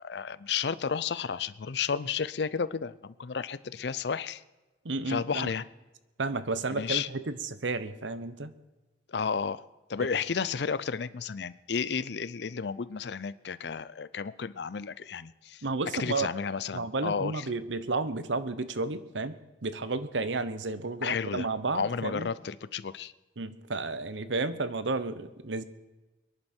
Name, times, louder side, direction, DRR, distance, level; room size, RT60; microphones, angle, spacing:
voice 1, 0.0-4.4 5.1-5.6 6.8-7.1 9.1-15.6 16.0-17.5 21.0-21.5 21.7-23.1, left 6 dB, 65° left, 17 dB, 0.5 m, -32 dB
voice 2, 4.8-5.5 6.2-8.5 15.6-16.3 16.7-19.4 19.6-22.3 23.4-25.6, right 3 dB, 90° right, 13 dB, 0.9 m, -32 dB
23.0 x 11.0 x 4.4 m, 1.1 s
head